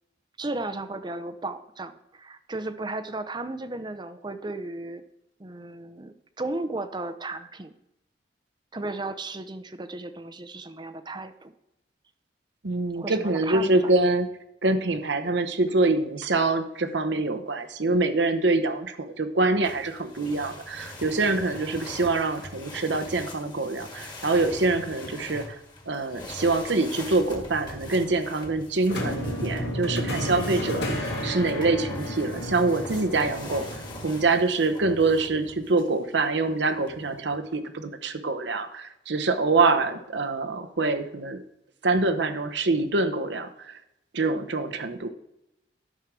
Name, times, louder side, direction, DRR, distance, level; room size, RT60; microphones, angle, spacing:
voice 1, 0.4-5.0 5.4-7.7 8.7-11.5 12.9-13.7, right 2 dB, 25° right, 10 dB, 0.6 m, -35 dB
voice 2, 12.6-14.3 14.6-25.6 25.9-41.4 41.8-43.8 44.1-45.1, right 3 dB, 70° right, 8 dB, 0.9 m, -25 dB
sound 1, 19.6-36.0 36.7-37.4, left 2 dB, 25° left, 1.8 m, -43 dB
sound 2, 28.9-34.1, equal, 65° left, 2.3 m, -31 dB
12.5 x 4.7 x 6.0 m, 0.85 s
head